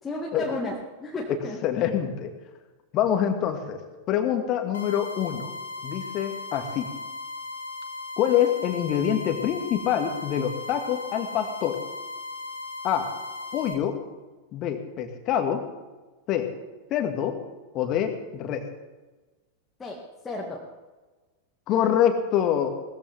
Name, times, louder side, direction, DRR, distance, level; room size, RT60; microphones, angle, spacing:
voice 1, 0.0-1.6 19.8-20.0 20.2-20.6, left 2 dB, 15° left, -2 dB, 2.2 m, -32 dB
voice 2, 1.6-2.3 2.9-3.8 4.1-5.5 5.8-6.9 8.2-11.8 12.8-13.1 13.5-13.9 14.5-15.6 16.3-16.5 16.9-17.4 17.7-18.6 21.7-22.7, left 9 dB, 35° left, 6 dB, 2.1 m, -25 dB
sound 1, 4.7-13.7, left 3 dB, 70° left, 2.0 m, -37 dB
19.0 x 14.5 x 3.7 m, 1.2 s
figure-of-eight pair, 90°, 0 cm